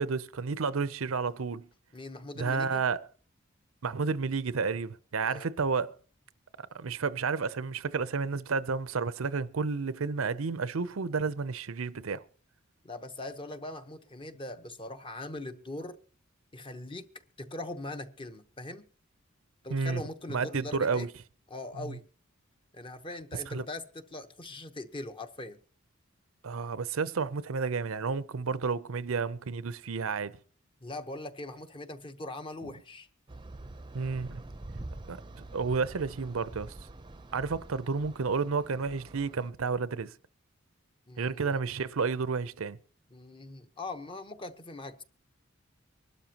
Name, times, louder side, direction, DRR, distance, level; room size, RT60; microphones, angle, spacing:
voice 1, 0.0-1.7 2.4-3.0 3.8-6.0 6.6-12.2 19.7-20.0 20.3-21.1 21.8-22.0 23.5-23.6 26.4-30.4 33.9-34.4 35.1-36.7 37.3-40.1 41.2-42.8, right 5 dB, 90° right, 0.6 m, -31 dB
voice 2, 1.9-2.8 5.2-5.5 12.8-16.0 16.5-17.1 17.4-18.9 19.6-21.1 21.5-22.0 22.7-25.6 30.8-33.1 41.1-41.6 43.1-45.0, left 2 dB, 25° left, 0.9 m, -41 dB
sound 1, 33.3-39.5, right 2 dB, 25° right, 0.6 m, -46 dB
24.5 x 12.0 x 2.9 m
head